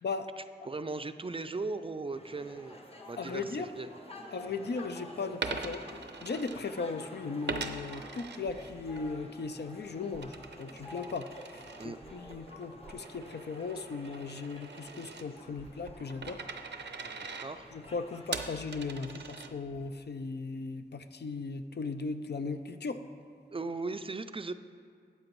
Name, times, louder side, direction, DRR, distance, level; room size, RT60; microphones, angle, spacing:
voice 1, 0.4-2.8 3.1-3.9 11.8-12.0 17.0-17.7 23.5-24.5, right 3 dB, 30° right, 10 dB, 0.3 m, -38 dB
sound 1, 2.1-18.4, left 1 dB, 35° left, 1.0 m, -50 dB
voice 2, 3.2-3.7 4.3-16.4 17.7-23.0, left 4 dB, 70° left, 9 dB, 0.5 m, -37 dB
Coin (dropping), 5.3-7.0 7.5-9.1 9.4-19.9, right 4 dB, 85° right, 0.5 m, -42 dB
12.5 x 7.9 x 3.1 m, 2.1 s
wide cardioid pair, 65°, 18 cm